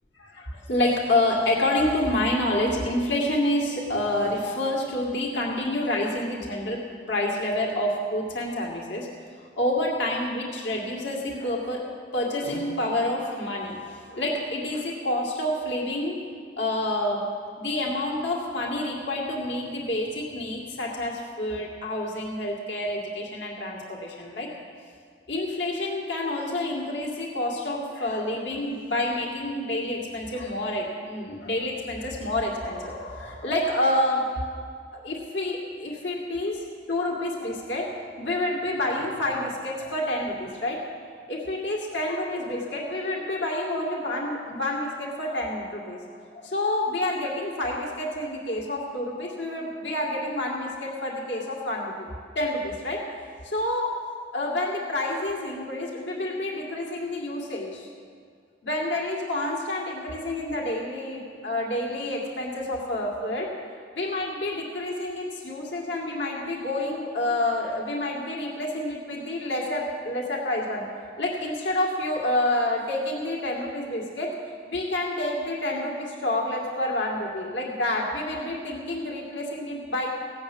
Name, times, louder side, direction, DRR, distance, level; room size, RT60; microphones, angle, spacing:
voice 1, 0.2-6.8 7.1-9.1 9.6-16.2 16.6-17.2 17.6-24.5 25.3-34.3 34.9-36.6 36.9-37.9 38.2-40.9 41.3-52.1 52.3-53.0 53.4-53.9 54.3-57.9 58.6-63.5 63.9-70.9 71.2-74.3 74.7-80.1, left 1 dB, 65° left, -2 dB, 2.4 m, -28 dB
16.5 x 7.3 x 8.7 m, 2.1 s
head